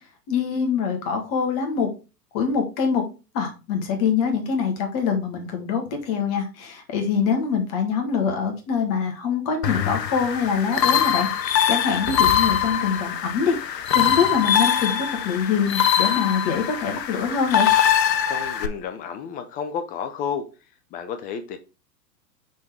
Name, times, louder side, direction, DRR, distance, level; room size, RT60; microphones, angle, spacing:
voice 1, 0.3-1.9 2.3-3.0 3.3-17.7, left 6 dB, 40° left, 4 dB, 1.7 m, -24 dB
sound 1, 9.6-18.7, left 9 dB, 75° left, 0.8 m, -22 dB
voice 2, 18.3-20.5 20.9-21.6, left 7 dB, 20° left, 8 dB, 0.4 m, -31 dB
6.2 x 3.7 x 4.6 m, 0.31 s
figure-of-eight pair, 100°, 50 cm